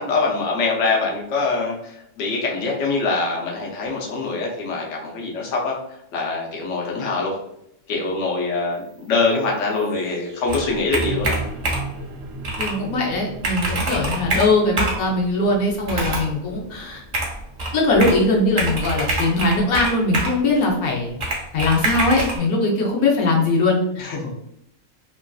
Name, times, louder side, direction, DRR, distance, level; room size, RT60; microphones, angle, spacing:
voice 1, 0.0-5.8 6.1-7.3 7.9-11.3 24.0-24.3, left 3 dB, 65° left, -2 dB, 1.0 m, -24 dB
sound 1, 8.7-18.8, right 2 dB, 70° right, 0.9 m, -38 dB
Computer keyboard, 10.5-12.0 12.4-12.8 13.1-13.2 13.4-15.1 15.8-16.3 17.1-18.2 18.6-20.4 21.2-22.4, right 2 dB, 40° right, 0.7 m, -25 dB
voice 2, 12.6-17.0 17.7-21.2 21.5-24.0, left 2 dB, 85° left, -1 dB, 1.1 m, -20 dB
3.0 x 2.5 x 2.3 m, 0.76 s
omnidirectional pair, 1.5 m